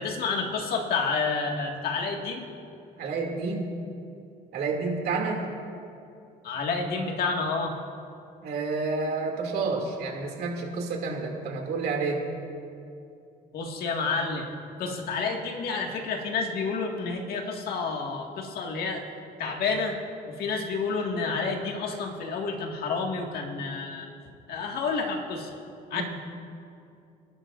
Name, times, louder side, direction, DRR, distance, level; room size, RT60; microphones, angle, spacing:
voice 1, 0.0-2.5 6.4-7.7 13.5-14.5 14.8-19.0 19.4-20.0 20.3-24.1 24.5-25.5 25.9-26.0, left 4 dB, 65° left, 1 dB, 1.9 m, -29 dB
voice 2, 3.0-3.7 4.5-5.5 8.4-12.2 25.9-26.0, right 4 dB, 70° right, 0 dB, 2.5 m, -29 dB
26.0 x 12.0 x 2.6 m, 2.6 s
cardioid pair, 110°, 17 cm